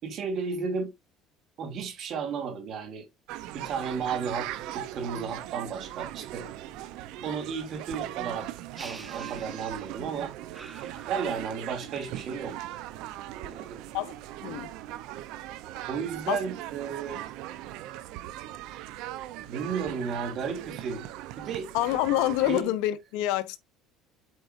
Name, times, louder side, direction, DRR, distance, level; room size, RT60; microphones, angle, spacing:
voice 1, 0.0-0.9 1.6-3.1 3.5-6.5 7.2-10.3 11.1-12.6 13.3-13.9 15.9-17.2 19.5-21.0 21.4-21.7 22.5-22.7, right 6 dB, 50° right, 2.9 m, -33 dB
sound 1, 3.3-22.6, right 14 dB, 70° right, 0.8 m, -39 dB
sound 2, 8.8-10.1 10.5-11.8, right 3 dB, 15° right, 1.1 m, -47 dB
voice 2, 14.4-14.7 15.8-15.9 16.3-16.4 21.7-23.6, left 14 dB, 80° left, 0.7 m, -27 dB
8.1 x 4.6 x 2.7 m
supercardioid pair, 105°, 0 cm